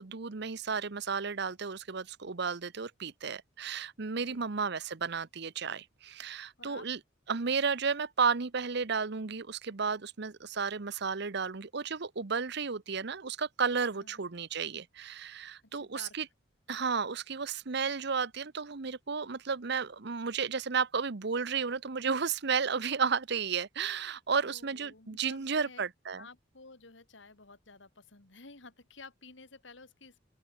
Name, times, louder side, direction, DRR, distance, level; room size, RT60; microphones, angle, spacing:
voice 1, 0.0-7.0 7.3-16.2 16.7-26.3, right 5 dB, 60° right, 0.9 m, -33 dB
voice 2, 4.1-4.5 6.6-6.9 13.9-14.2 15.6-16.2 24.4-25.8 26.1-30.2, left 3 dB, 70° left, 2.7 m, -53 dB
open air
head